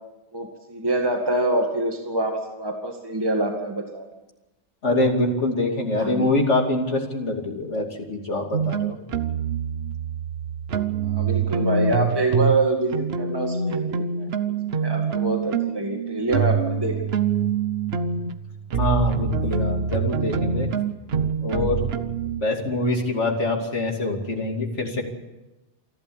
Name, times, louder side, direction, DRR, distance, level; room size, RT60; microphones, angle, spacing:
voice 1, 0.3-4.0 5.6-6.3 11.0-16.9, right 2 dB, 20° right, 2 dB, 2.2 m, -26 dB
voice 2, 4.8-9.0 18.7-20.7 21.4-21.8 22.4-25.0, left 2 dB, 75° left, 2 dB, 3.0 m, -24 dB
sound 1, 8.5-12.6 12.9-22.4, right 6 dB, 60° right, 1.2 m, -25 dB
28.0 x 12.0 x 8.7 m, 1.1 s
omnidirectional pair, 1.2 m